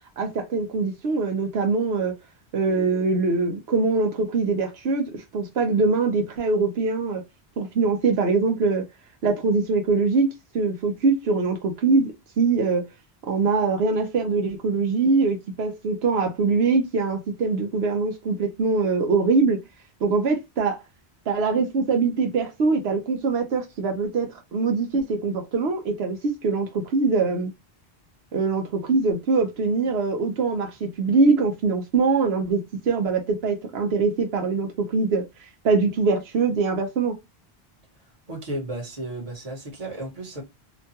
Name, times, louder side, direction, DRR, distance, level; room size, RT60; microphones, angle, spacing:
voice 1, 0.2-2.1 2.5-7.2 7.6-8.9 9.2-10.3 10.5-12.1 12.4-12.8 13.3-19.6 20.0-20.8 21.3-27.5 28.3-32.6 32.9-35.2 35.6-37.2, right 4 dB, 80° right, 0.9 m, -23 dB
voice 2, 38.3-40.4, right 1 dB, 40° right, 1.1 m, -33 dB
3.0 x 2.2 x 2.7 m
omnidirectional pair, 1.0 m